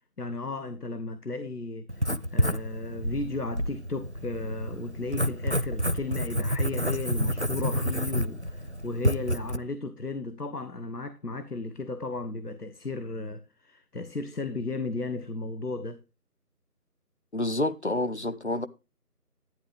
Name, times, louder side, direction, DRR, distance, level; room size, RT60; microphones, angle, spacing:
voice 1, 0.2-16.0, left 3 dB, 75° left, 1.4 m, -35 dB
Writing, 1.9-9.6, equal, 50° right, 0.4 m, -29 dB
voice 2, 17.3-18.7, left 1 dB, 45° left, 0.8 m, -28 dB
11.5 x 9.9 x 3.5 m
figure-of-eight pair, 170°, 47 cm